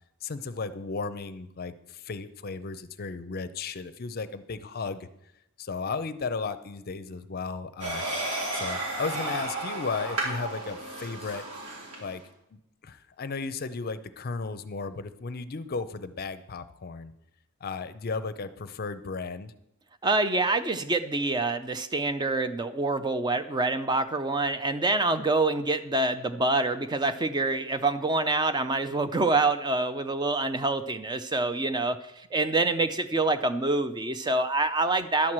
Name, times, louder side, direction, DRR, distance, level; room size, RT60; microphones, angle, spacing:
voice 1, 0.2-5.1 5.6-8.1 8.5-11.4 12.0-12.2 12.5-17.1 17.6-19.5, left 4 dB, 45° left, 12 dB, 0.5 m, -35 dB
sound 1, 7.8-12.1, right 2 dB, 85° right, 3.2 m, -33 dB
voice 2, 20.0-35.3, right 2 dB, 20° right, 10 dB, 0.4 m, -26 dB
11.5 x 4.7 x 7.3 m, 0.82 s
head